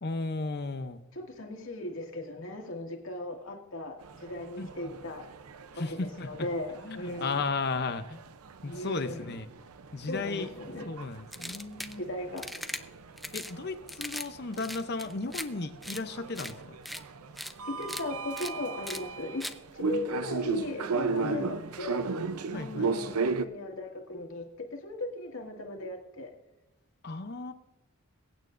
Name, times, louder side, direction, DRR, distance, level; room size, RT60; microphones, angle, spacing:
voice 1, 0.0-1.0 4.6-4.9 5.7-6.5 6.9-8.2 8.6-9.5 9.9-10.5 10.9-12.0 13.3-16.6 21.2-21.5 22.5-22.9 27.0-27.5, left 3 dB, 50° left, 9 dB, 0.7 m, -35 dB
voice 2, 1.1-5.2 5.8-7.4 8.6-9.4 10.1-10.9 12.0-12.5 17.7-19.4 19.7-22.0 22.5-26.3, left 1 dB, 65° left, 2 dB, 2.1 m, -37 dB
sound 1, 4.0-23.4, right 4 dB, 85° right, 0.6 m, -37 dB
sound 2, 11.3-12.0 12.4-12.8 13.2-13.5 13.9-14.3 14.5-15.5 15.8-16.0 16.4-16.5 16.9-17.0 17.4-17.5 17.8-18.0 18.4-18.5 18.9-19.0 19.4-19.5, equal, ahead, 0.4 m, -38 dB
22.5 x 8.9 x 2.6 m, 1.0 s
head